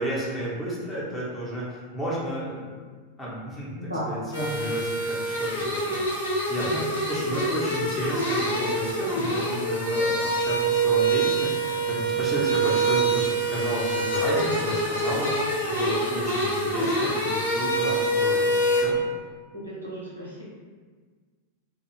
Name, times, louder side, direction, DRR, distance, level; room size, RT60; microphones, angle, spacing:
voice 1, 0.0-1.6 1.9-2.7 3.2-3.7 4.1-4.2 4.5-15.3 15.7-19.0, equal, 10° left, -8 dB, 0.9 m, -32 dB
voice 2, 3.8-4.5 6.7-6.8 12.1-12.2 19.5-20.4, equal, 85° right, -6 dB, 0.8 m, -34 dB
sound 1, 4.3-18.8, right 2 dB, 85° left, 0.8 m, -25 dB
2.6 x 2.3 x 3.1 m, 1.5 s
figure-of-eight pair, 90°, 0 cm